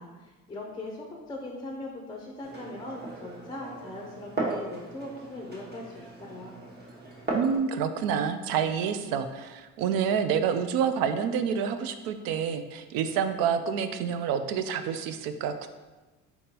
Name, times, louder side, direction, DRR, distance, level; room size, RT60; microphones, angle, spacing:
voice 1, 0.0-6.5, left 1 dB, 15° left, 0 dB, 0.5 m, -40 dB
Glass, 2.4-7.6, right 2 dB, 30° right, 0.9 m, -37 dB
voice 2, 7.3-15.7, right 7 dB, 75° right, 9 dB, 0.5 m, -28 dB
4.1 x 3.6 x 2.8 m, 1.2 s
cardioid pair, 105°, 34 cm